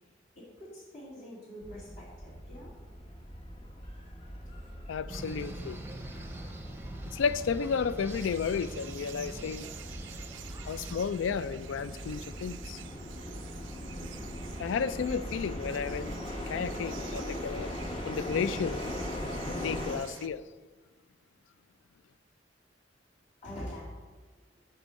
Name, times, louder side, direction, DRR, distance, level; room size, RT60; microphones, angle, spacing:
voice 1, 0.3-2.7 23.4-23.9 24.5-24.6, left 1 dB, 50° left, 2.4 m, -44 dB
sound 1, 1.6-20.0, equal, 30° left, 1.0 m, -40 dB
voice 2, 4.9-5.8 7.1-9.7 10.7-12.8 14.6-16.1 16.5-17.7 18.1-18.8 19.6-20.4, left 6 dB, 85° left, 0.3 m, -32 dB
sound 2, 5.1-11.0, right 2 dB, 10° right, 0.7 m, -46 dB
sound 3, 8.1-20.3, right 10 dB, 85° right, 0.4 m, -50 dB
8.1 x 4.6 x 6.3 m
head